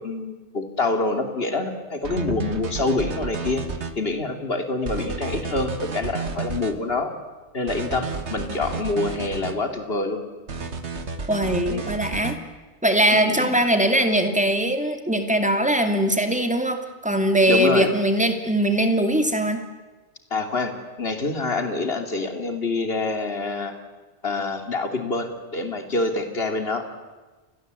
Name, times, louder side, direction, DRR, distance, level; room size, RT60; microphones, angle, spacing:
voice 1, 0.0-3.6 4.0-7.1 7.5-10.2 11.7-11.9 13.1-13.5 17.5-17.9 20.3-20.7 21.0-23.8 24.2-26.9, left 3 dB, 60° left, 6 dB, 3.1 m, -26 dB
sound 1, 2.0-3.9 4.9-6.7 7.7-9.6 10.5-12.4, right 4 dB, 75° right, 1.9 m, -31 dB
voice 2, 11.3-12.4 12.8-19.6, right 1 dB, 5° right, 6 dB, 2.7 m, -21 dB
29.5 x 21.5 x 8.3 m, 1.3 s
omnidirectional pair, 1.1 m